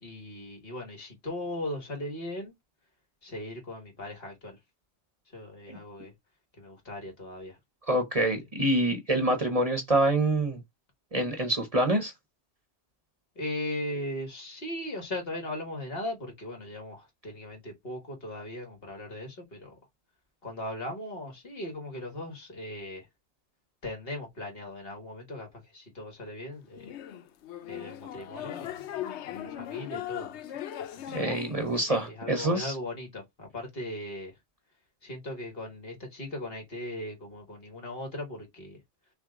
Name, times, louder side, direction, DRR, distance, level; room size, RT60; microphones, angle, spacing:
voice 1, 0.0-2.5 3.2-4.6 5.3-6.1 6.6-7.6 13.4-19.8 20.4-23.1 23.8-26.9 27.7-30.4 30.8-31.3 32.0-34.3 35.0-38.8, left 1 dB, 60° left, 2.0 m, -38 dB
voice 2, 7.9-10.6 11.1-12.1 31.1-32.7, right 1 dB, 35° right, 1.0 m, -26 dB
sound 1, 26.8-32.1, left 11 dB, 85° left, 0.9 m, -39 dB
5.8 x 2.2 x 3.7 m
omnidirectional pair, 1.1 m